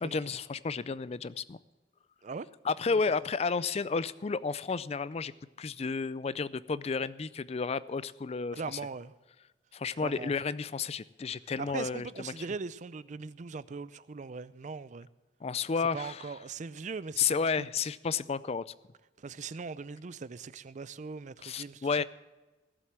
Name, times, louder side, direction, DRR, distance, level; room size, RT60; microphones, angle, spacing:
voice 1, 0.0-1.6 2.6-5.3 5.6-8.8 9.7-12.4 15.4-16.3 17.2-18.6 21.4-22.0, left 5 dB, 35° left, 0.4 m, -32 dB
voice 2, 8.5-9.1 10.0-10.3 11.6-15.1 15.9-17.4 19.2-22.0, right 4 dB, 40° right, 0.4 m, -40 dB
17.0 x 7.7 x 7.4 m
head